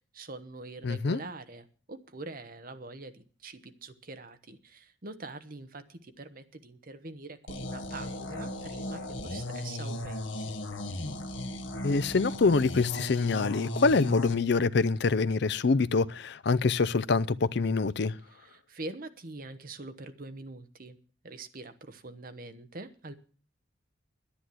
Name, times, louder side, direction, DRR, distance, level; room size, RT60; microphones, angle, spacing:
voice 1, 0.1-10.6 18.3-21.0 21.2-23.1, right 2 dB, 45° right, 1.1 m, -44 dB
voice 2, 0.8-1.2 11.8-18.2, left 4 dB, 60° left, 0.5 m, -25 dB
sound 1, 7.5-14.4, left 1 dB, 75° left, 1.5 m, -36 dB
10.0 x 10.0 x 7.7 m
head